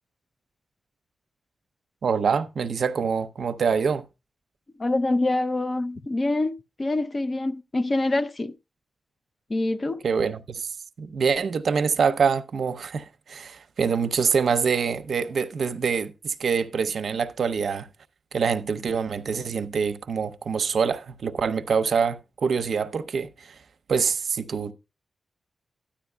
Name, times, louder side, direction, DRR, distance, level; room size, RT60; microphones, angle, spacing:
voice 1, 2.0-4.0 10.0-10.7 11.0-17.9 18.3-23.6 23.9-24.7, right 6 dB, 65° right, 0.7 m, -25 dB
voice 2, 4.8-8.6 9.5-10.1, left 2 dB, 30° left, 0.5 m, -25 dB
13.0 x 10.0 x 2.2 m
wide cardioid pair, 160°, 0 cm